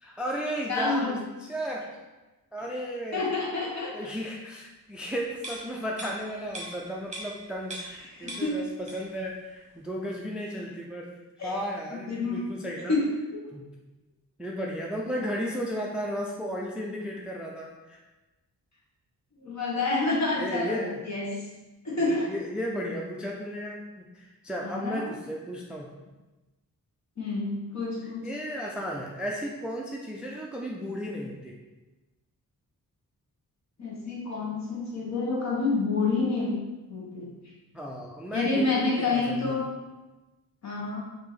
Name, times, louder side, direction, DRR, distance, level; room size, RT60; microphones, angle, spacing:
voice 1, 0.0-1.9 2.5-3.3 3.9-11.2 11.4-13.0 13.5-13.7 14.4-18.0 20.4-21.0 22.0-25.9 28.2-31.6 37.7-39.6, equal, 5° right, -1 dB, 0.3 m, -34 dB
voice 2, 0.7-1.2 3.1-4.1 8.0-8.6 11.4-11.6 12.1-12.4 12.9-13.5 19.4-21.3 21.8-22.3 24.6-25.1 27.2-28.2 33.8-36.6 36.9-37.4 38.3-39.7 40.6-41.0, left 3 dB, 50° left, -4 dB, 1.3 m, -28 dB
sound 1, 5.4-8.0 8.3-9.2 9.6-9.7, right 1 dB, 20° right, 1.0 m, -41 dB
4.8 x 2.8 x 4.0 m, 1.1 s
wide cardioid pair, 135°, 36 cm